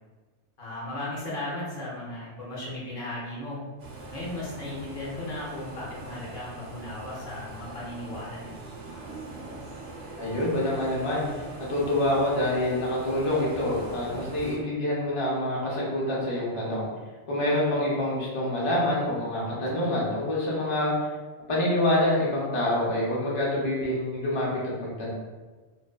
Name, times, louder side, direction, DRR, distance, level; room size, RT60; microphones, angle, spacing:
voice 1, 0.6-3.6 4.1-9.2, left 1 dB, 55° left, -6 dB, 0.8 m, -36 dB
sound 1, 3.8-14.6, right 2 dB, 85° right, 0.9 m, -42 dB
voice 2, 10.2-11.3 11.7-16.8 17.3-21.1 21.5-24.5 24.8-25.1, left 1 dB, 40° left, -6 dB, 0.5 m, -26 dB
2.5 x 2.2 x 2.3 m, 1.3 s
omnidirectional pair, 1.2 m